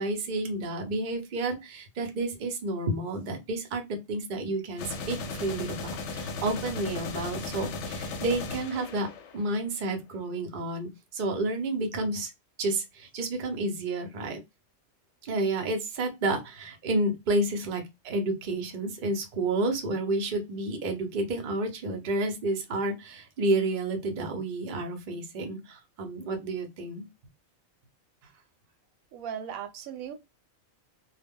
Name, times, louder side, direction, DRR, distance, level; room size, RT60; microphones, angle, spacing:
voice 1, 0.0-3.8 4.1-9.1 9.3-12.3 12.6-14.4 15.2-27.1, right 2 dB, 50° right, 0.7 m, -30 dB
sound 1, 4.8-9.6, left 3 dB, 65° left, 0.8 m, -36 dB
voice 2, 29.1-30.1, right 8 dB, 90° right, 1.0 m, -37 dB
2.2 x 2.1 x 3.5 m
omnidirectional pair, 1.4 m